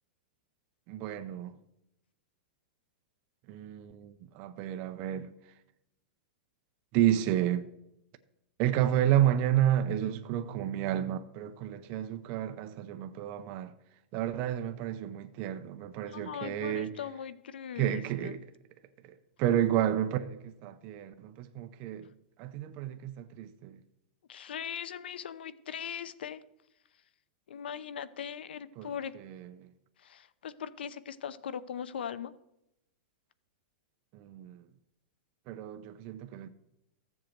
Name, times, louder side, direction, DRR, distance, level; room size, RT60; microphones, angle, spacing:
voice 1, 0.9-1.6 3.5-5.3 6.9-7.7 8.6-13.7 14.1-16.9 17.8-18.4 19.4-22.0 22.4-23.8 28.8-28.9 29.3-29.7 34.1-34.6 35.5-36.5, right 11 dB, 30° right, 0.6 m, -31 dB
voice 2, 16.1-18.4 24.3-26.4 27.5-29.1 30.0-32.3, left 8 dB, 90° left, 0.7 m, -40 dB
14.0 x 7.5 x 4.5 m
supercardioid pair, 165°, 5 cm